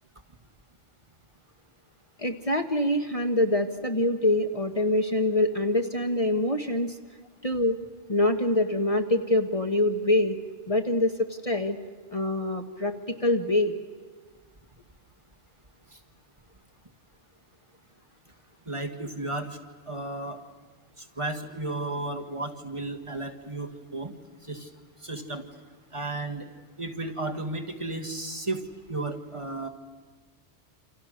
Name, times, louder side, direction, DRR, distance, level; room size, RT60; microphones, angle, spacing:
voice 1, 2.2-7.0 7.4-7.8 8.1-11.8 12.1-13.7, left 1 dB, 35° left, 5 dB, 1.2 m, -25 dB
voice 2, 18.7-19.6 19.9-20.4 21.0-24.2 24.4-24.7 25.0-25.4 25.9-26.5 26.8-29.7, right 2 dB, 30° right, 3 dB, 1.7 m, -33 dB
28.5 x 27.0 x 6.5 m, 1.4 s
omnidirectional pair, 1.1 m